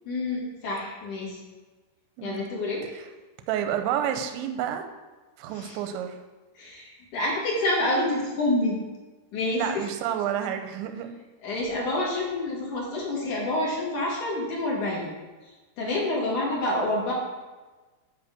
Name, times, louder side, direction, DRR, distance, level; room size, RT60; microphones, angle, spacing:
voice 1, 0.0-1.4 2.2-2.8 5.5-5.8 6.5-8.7 9.3-9.8 11.4-15.1 15.8-17.1, left 1 dB, 45° left, -5 dB, 3.3 m, -28 dB
voice 2, 2.2-2.5 2.9-3.0 3.5-4.8 5.4-6.2 9.5-11.1, right 10 dB, 75° right, 7 dB, 2.8 m, -29 dB
10.0 x 4.9 x 7.8 m, 1.2 s
omnidirectional pair, 6.0 m